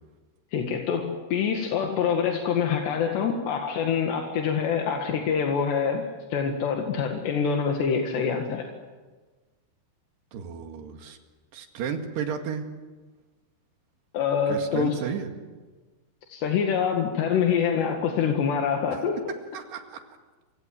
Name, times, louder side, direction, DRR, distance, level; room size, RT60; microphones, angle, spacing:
voice 1, 0.5-6.0 6.3-8.7 14.1-15.0 16.3-19.3, left 7 dB, 85° left, 2 dB, 4.2 m, -25 dB
voice 2, 10.3-11.2 11.5-12.6 14.5-15.3 18.9-19.0 19.5-20.0, right 7 dB, 75° right, 5 dB, 4.1 m, -33 dB
28.5 x 25.0 x 7.7 m, 1.3 s
omnidirectional pair, 4.8 m